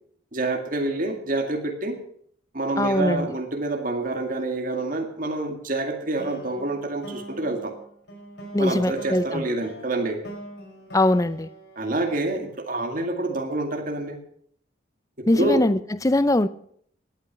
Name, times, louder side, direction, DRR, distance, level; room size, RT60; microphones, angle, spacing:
voice 1, 0.3-2.0 2.5-7.7 8.6-10.2 11.8-14.2 15.2-15.6, right 2 dB, 45° right, 4 dB, 2.1 m, -27 dB
voice 2, 2.8-3.3 8.5-9.4 10.9-11.5 15.3-16.5, left 1 dB, 15° left, 16 dB, 0.5 m, -21 dB
sound 1, 6.2-12.6, right 2 dB, 60° left, 5.4 m, -42 dB
17.5 x 9.2 x 5.9 m, 0.63 s
head